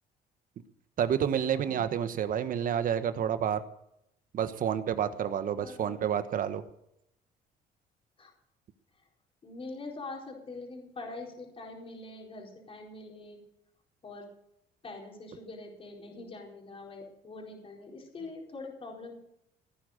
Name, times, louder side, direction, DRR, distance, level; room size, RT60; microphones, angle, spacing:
voice 1, 1.0-3.6 4.3-6.6, right 9 dB, 55° right, 11 dB, 1.3 m, -29 dB
voice 2, 1.5-2.0 5.6-6.0 8.2-8.3 9.4-13.4 14.0-14.3 14.8-19.2, left 3 dB, 35° left, 0 dB, 4.4 m, -44 dB
16.5 x 9.9 x 6.7 m, 0.79 s
cardioid pair, 110°, 17 cm